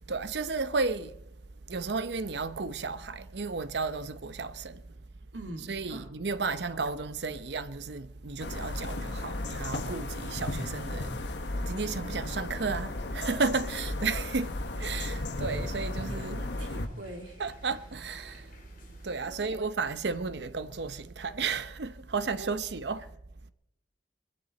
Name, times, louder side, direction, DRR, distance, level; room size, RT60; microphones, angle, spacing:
voice 1, 0.0-5.0 5.7-11.3 11.6-16.4 17.4-18.6 19.0-23.2, right 4 dB, 65° right, 0.7 m, -33 dB
voice 2, 4.7-5.1 5.3-6.1 6.5-6.8 16.0-17.4 19.3-19.7 22.4-22.6, right 1 dB, 90° right, 2.5 m, -44 dB
sound 1, 8.4-16.9, left 2 dB, 70° left, 1.2 m, -35 dB
sound 2, 14.0-19.1, left 2 dB, 45° left, 2.7 m, -57 dB
22.0 x 15.0 x 4.2 m
head